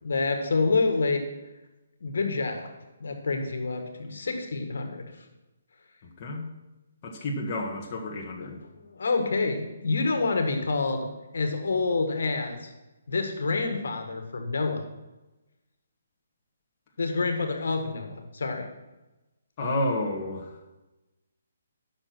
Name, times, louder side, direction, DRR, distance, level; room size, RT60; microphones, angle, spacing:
voice 1, 0.0-1.3 2.0-2.7 3.0-5.1 8.7-11.1 11.3-12.7 13.1-14.8 17.0-18.7, left 3 dB, 75° left, 6 dB, 1.7 m, -27 dB
voice 2, 6.0-6.5 7.0-8.6 19.6-20.6, left 1 dB, 30° left, 0 dB, 1.7 m, -31 dB
11.0 x 6.5 x 6.1 m, 1.0 s
hypercardioid pair, 160°, 0 cm